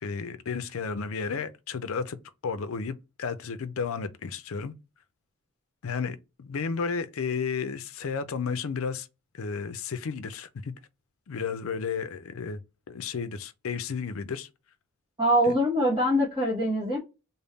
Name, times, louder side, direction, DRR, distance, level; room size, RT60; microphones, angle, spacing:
voice 1, 0.0-2.2 2.4-4.7 5.8-9.1 9.3-10.7 11.3-12.6 12.9-14.5 15.4-15.5, left 5 dB, 65° left, 0.5 m, -32 dB
voice 2, 15.2-17.0, equal, 20° right, 1.1 m, -23 dB
3.5 x 2.1 x 3.9 m
head